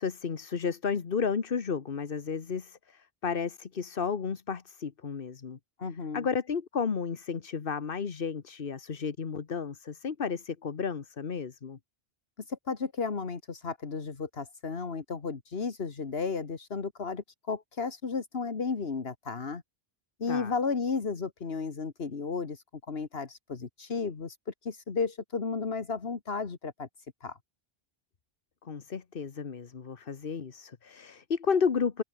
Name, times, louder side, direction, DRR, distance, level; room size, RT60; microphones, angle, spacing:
voice 1, 0.0-5.6 6.1-11.8 20.3-20.5 28.6-32.0, left 6 dB, 60° left, 1.4 m, -32 dB
voice 2, 5.8-6.3 12.5-19.6 20.2-24.4 24.6-26.9 27.2-27.4, left 4 dB, 75° left, 1.9 m, -33 dB
open air
omnidirectional pair, 1.0 m